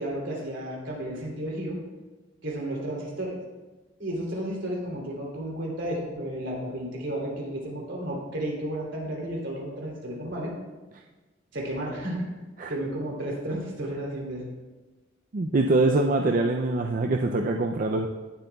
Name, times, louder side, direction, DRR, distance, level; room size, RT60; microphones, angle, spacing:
voice 1, 0.0-1.8 2.4-3.3 4.0-10.5 11.5-12.2 12.7-14.5, right 1 dB, 70° right, -3 dB, 3.2 m, -32 dB
voice 2, 15.3-18.1, right 2 dB, 45° right, 3 dB, 0.5 m, -24 dB
18.0 x 7.9 x 2.3 m, 1.2 s
head